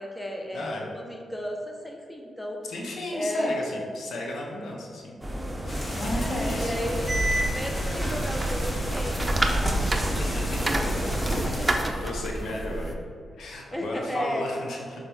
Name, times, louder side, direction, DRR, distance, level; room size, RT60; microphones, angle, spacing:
voice 1, 0.0-2.6 3.1-3.7 6.1-7.1 7.5-11.2 11.6-12.1 13.7-14.4, equal, 10° left, 1 dB, 1.2 m, -34 dB
voice 2, 0.5-0.9 2.6-5.2 5.6-6.9 10.2-10.7 11.1-11.3 11.8-13.0 13.4-15.0, left 1 dB, 70° left, -1 dB, 1.1 m, -34 dB
sound 1, 5.2-11.4, equal, 10° right, 1.3 m, -33 dB
sound 2, 5.7-11.8, equal, 35° left, 1.6 m, -31 dB
sound 3, 7.1-12.9, right 1 dB, 25° right, 0.8 m, -30 dB
6.9 x 4.8 x 3.6 m, 2.4 s
supercardioid pair, 45°, 0 cm